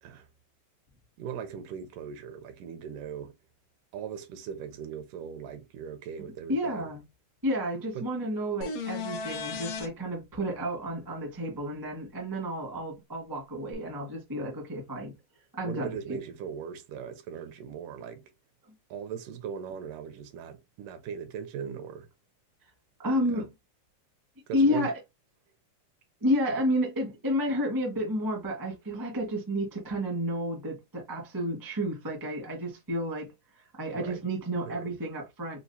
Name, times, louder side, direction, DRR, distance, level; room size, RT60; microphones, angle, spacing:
voice 1, 1.2-3.3 3.9-6.9 8.0-8.1 15.7-18.2 18.9-22.1 23.1-23.2 24.5-24.9 33.9-34.2 34.7-34.9, right 7 dB, 80° right, 2.3 m, -39 dB
voice 2, 6.5-7.0 7.4-15.1 15.5-16.2 23.0-23.5 24.5-24.9 26.2-35.6, equal, 20° right, 0.5 m, -31 dB
sound 1, 8.6-9.9 13.7-13.8, left 4 dB, 85° left, 1.3 m, -35 dB
5.7 x 2.4 x 2.7 m
omnidirectional pair, 3.7 m